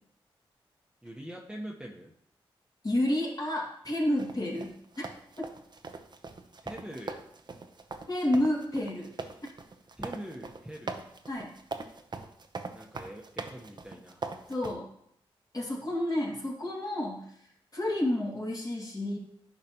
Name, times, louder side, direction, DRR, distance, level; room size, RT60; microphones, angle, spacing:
voice 1, 1.0-2.1 6.6-7.2 10.0-11.0 12.7-14.2, right 1 dB, 10° right, -1 dB, 1.1 m, -43 dB
voice 2, 2.8-5.1 5.4-5.5 8.1-9.1 11.3-11.5 14.5-14.9 15.5-17.4 17.7-19.2, left 1 dB, 40° left, -2 dB, 2.3 m, -30 dB
sound 1, 4.2-14.7, right 3 dB, 50° right, 0.8 m, -41 dB
10.5 x 5.0 x 3.0 m, 0.69 s
cardioid pair, 55°, 10 cm